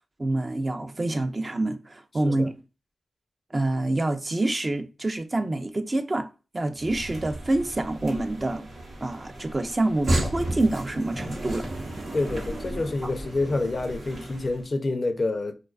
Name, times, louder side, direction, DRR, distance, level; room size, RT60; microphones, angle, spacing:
voice 1, 0.2-2.5 3.5-6.3 6.5-8.7 9.0-11.7 13.0-13.1, right 2 dB, 35° right, 0.4 m, -27 dB
sound 1, 6.8-14.6, right 1 dB, 70° right, 0.8 m, -33 dB
voice 2, 12.1-15.5, left 2 dB, 50° left, 0.4 m, -28 dB
2.4 x 2.3 x 2.3 m
supercardioid pair, 40°, 0 cm